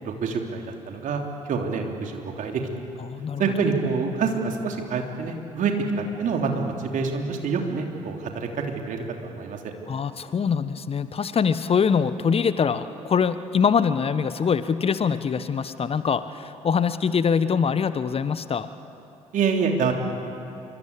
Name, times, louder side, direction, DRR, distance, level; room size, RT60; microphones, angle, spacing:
voice 1, 0.0-2.6 3.4-9.7 19.3-19.9, right 5 dB, 50° right, 2 dB, 3.4 m, -27 dB
voice 2, 3.0-3.4 9.9-18.7, left 6 dB, 35° left, 13 dB, 1.1 m, -23 dB
27.0 x 24.5 x 8.5 m, 2.7 s
figure-of-eight pair, 45°, 17 cm